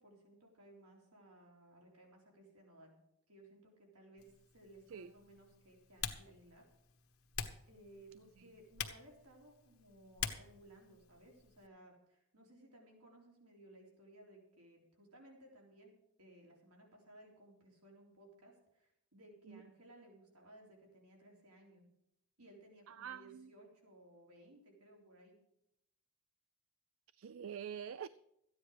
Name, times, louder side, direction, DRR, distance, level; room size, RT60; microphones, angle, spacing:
voice 1, 0.0-3.0 3.3-6.7 7.7-15.9 16.2-21.9 22.4-25.4, right 1 dB, 85° right, 0 dB, 3.7 m, -60 dB
Typing, 4.2-11.7, left 8 dB, 70° left, 1.2 m, -47 dB
voice 2, 22.9-23.5 27.1-28.1, right 8 dB, 65° right, 16 dB, 0.4 m, -46 dB
14.0 x 9.7 x 5.0 m, 0.80 s
head